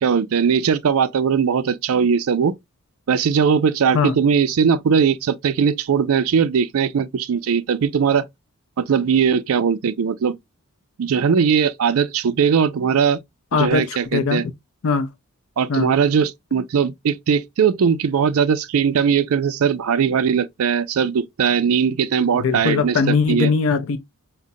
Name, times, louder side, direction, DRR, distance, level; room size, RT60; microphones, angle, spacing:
voice 1, 0.0-2.5 3.1-8.3 8.8-10.3 11.0-13.2 13.6-14.4 15.6-23.0 23.3-23.5, right 6 dB, 75° right, 0.4 m, -19 dB
voice 2, 13.5-14.5 14.8-15.1 15.7-15.9 22.3-24.0, left 5 dB, 65° left, 0.5 m, -20 dB
4.9 x 2.1 x 2.6 m
head